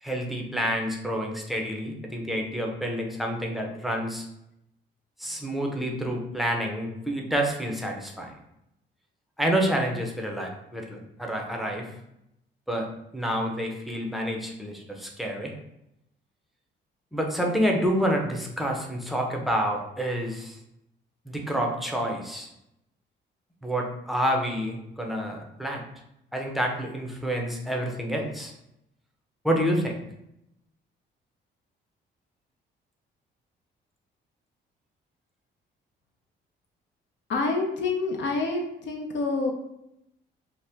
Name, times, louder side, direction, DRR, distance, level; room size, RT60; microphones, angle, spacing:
voice 1, 0.0-4.2 5.2-8.3 9.4-11.9 12.7-12.9 13.1-15.5 17.1-20.6 21.3-22.5 23.6-25.8 26.3-28.5 29.4-30.0, equal, ahead, 0 dB, 0.6 m, -28 dB
voice 2, 37.3-39.5, left 3 dB, 65° left, 2 dB, 0.6 m, -27 dB
2.8 x 2.1 x 3.3 m, 0.82 s
cardioid pair, 90°, 20 cm